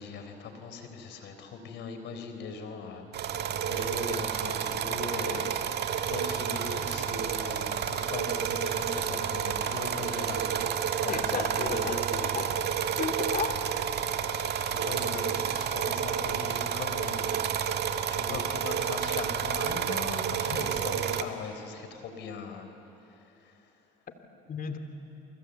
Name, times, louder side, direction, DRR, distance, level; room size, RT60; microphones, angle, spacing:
voice 1, 0.0-11.2 11.6-12.0 14.6-22.7 23.0-23.8, left 5 dB, 65° left, 7 dB, 4.2 m, -40 dB
sound 1, 3.1-21.2, right 8 dB, 60° right, 1.8 m, -30 dB
voice 2, 11.1-12.7 13.0-13.6 24.4-24.8, left 6 dB, 45° left, 6 dB, 3.1 m, -34 dB
29.5 x 24.0 x 8.4 m, 2.8 s
supercardioid pair, 75°, 19 cm